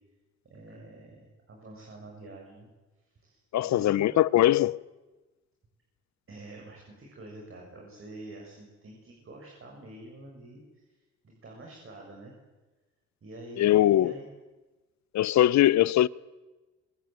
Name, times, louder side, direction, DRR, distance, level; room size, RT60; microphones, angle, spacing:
voice 1, 0.5-2.7 3.2-4.2 6.3-11.0 11.2-12.3 13.2-14.3, right 2 dB, 45° right, 7.3 m, -46 dB
voice 2, 3.5-4.8 13.6-14.2 15.1-16.1, left 13 dB, 65° left, 0.7 m, -21 dB
24.5 x 22.0 x 9.2 m
cardioid pair, 90°, 30 cm